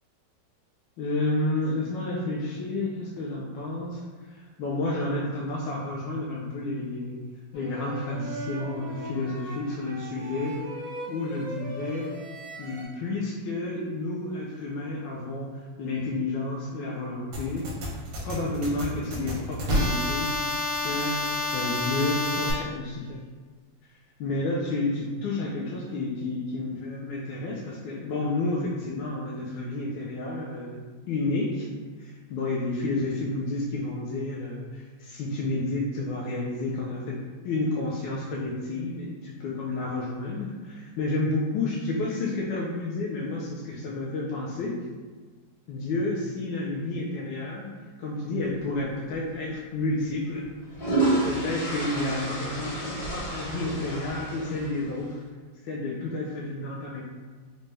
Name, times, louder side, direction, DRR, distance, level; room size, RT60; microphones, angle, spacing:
voice 1, 1.0-7.2 7.5-10.6 11.1-12.1 12.6-17.7 18.2-20.3 20.8-21.2 21.5-23.1 24.2-31.7 32.0-37.2 37.4-44.7 45.7-47.7 48.0-50.5 51.2-55.2 55.6-57.0, left 2 dB, 85° left, -4 dB, 1.3 m, -30 dB
sound 1, 7.5-12.8, right 1 dB, 20° left, 0.4 m, -39 dB
sound 2, 17.3-22.5, left 2 dB, 70° right, 1.3 m, -29 dB
sound 3, 49.1-49.3 50.4-55.0, right 2 dB, 60° left, 2.0 m, -30 dB
4.0 x 2.2 x 3.2 m, 1.4 s
omnidirectional pair, 1.9 m